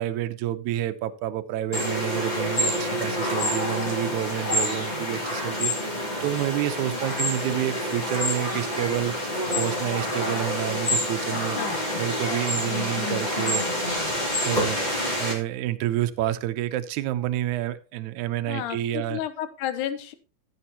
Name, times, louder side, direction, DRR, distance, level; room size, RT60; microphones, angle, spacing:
voice 1, 0.0-11.6 12.0-13.9 14.4-19.2, right 13 dB, 75° right, 10 dB, 2.0 m, -29 dB
sound 1, 1.7-15.3, left 1 dB, 15° left, 2.8 m, -27 dB
sound 2, 10.1-14.1 14.5-14.8 15.2-15.3, right 2 dB, 40° left, 3.4 m, -46 dB
voice 2, 11.6-12.0 18.5-20.1, left 11 dB, 85° left, 12 dB, 2.4 m, -32 dB
14.0 x 8.1 x 2.9 m, 0.33 s
omnidirectional pair, 3.5 m